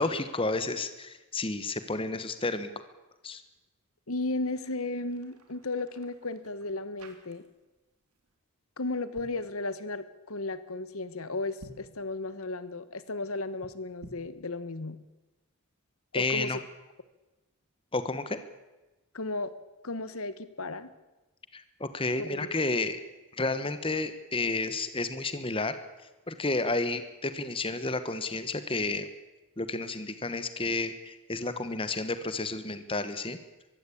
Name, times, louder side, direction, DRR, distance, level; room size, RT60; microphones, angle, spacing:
voice 1, 0.0-2.7 3.2-3.4 16.1-16.6 17.9-18.4 21.5-23.0 23.4-25.8 26.3-29.1 29.6-33.4, left 3 dB, 25° left, 11 dB, 1.2 m, -31 dB
voice 2, 4.1-7.4 8.8-15.0 16.1-16.6 19.1-19.5 19.8-20.9 22.2-22.5, left 2 dB, 75° left, 14 dB, 1.3 m, -34 dB
sound 1, 4.8-7.8 8.0-8.3 8.9-9.5 11.5-12.0 13.9-14.4, right 1 dB, 85° right, 3.2 m, -53 dB
22.5 x 15.5 x 8.6 m, 1.1 s
head